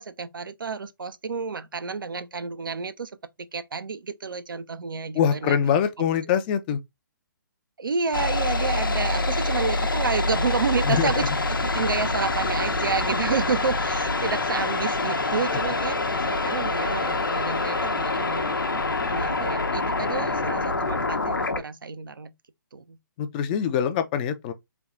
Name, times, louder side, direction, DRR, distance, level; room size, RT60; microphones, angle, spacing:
voice 1, 0.0-3.1 3.5-5.6 6.0-6.1 7.8-18.5 19.1-22.3 22.7-23.0, right 5 dB, 80° right, 0.5 m, -30 dB
voice 2, 5.2-6.8 10.9-11.1 23.2-24.5, left 8 dB, 25° left, 0.4 m, -23 dB
sound 1, 8.1-21.6, left 2 dB, 85° left, 0.8 m, -26 dB
3.4 x 2.3 x 3.7 m
figure-of-eight pair, 135°, 11 cm